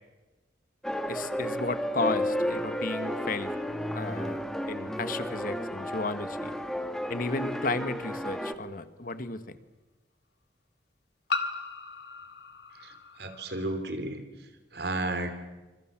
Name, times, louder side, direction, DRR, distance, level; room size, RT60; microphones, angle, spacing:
sound 1, 0.8-8.5, equal, 5° left, 1.7 m, -32 dB
voice 1, 1.1-3.5 3.9-6.5 7.1-9.6, left 3 dB, 50° left, 11 dB, 1.6 m, -34 dB
sound 2, 7.4-7.5 9.1-9.2 11.3-13.8, left 4 dB, 65° left, 2.5 m, -36 dB
voice 2, 12.7-15.3, right 2 dB, 65° right, 8 dB, 3.4 m, -34 dB
27.5 x 26.5 x 7.6 m, 1.2 s
head